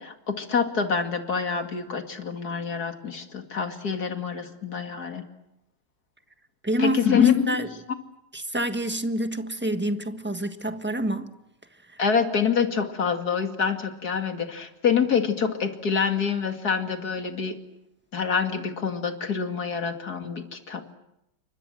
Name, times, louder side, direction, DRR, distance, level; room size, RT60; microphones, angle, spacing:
voice 1, 0.0-5.2 6.8-7.6 12.0-17.6 18.1-20.9, left 6 dB, 50° left, 2.8 m, -26 dB
voice 2, 6.6-7.7 8.3-11.3, right 1 dB, 5° right, 1.2 m, -28 dB
30.0 x 25.0 x 7.7 m
omnidirectional pair, 2.2 m